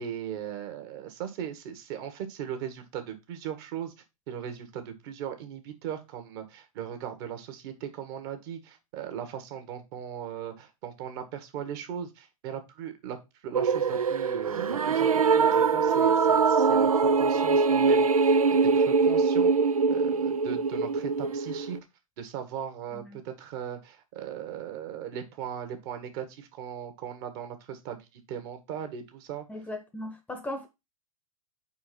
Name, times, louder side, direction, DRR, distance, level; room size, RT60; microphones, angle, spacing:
voice 1, 0.0-3.9 4.3-13.2 13.4-19.5 19.9-21.8 22.2-29.4, right 9 dB, 45° right, 1.6 m, -38 dB
sound 1, 13.5-21.8, right 5 dB, 80° right, 0.6 m, -23 dB
voice 2, 29.5-30.7, left 1 dB, 10° left, 1.0 m, -37 dB
4.9 x 4.7 x 5.9 m
figure-of-eight pair, 105°, 18 cm